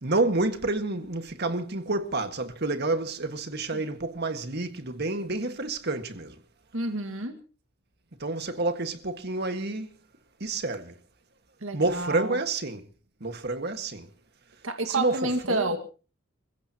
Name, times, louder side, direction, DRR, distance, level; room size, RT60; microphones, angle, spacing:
voice 1, 0.0-6.4 8.2-9.9 10.4-11.0 11.7-12.9 13.2-14.1 14.9-15.8, right 2 dB, 55° right, 1.8 m, -29 dB
voice 2, 6.7-7.4 11.6-12.4 14.6-15.8, right 2 dB, 85° right, 2.0 m, -29 dB
30.0 x 15.5 x 3.0 m
head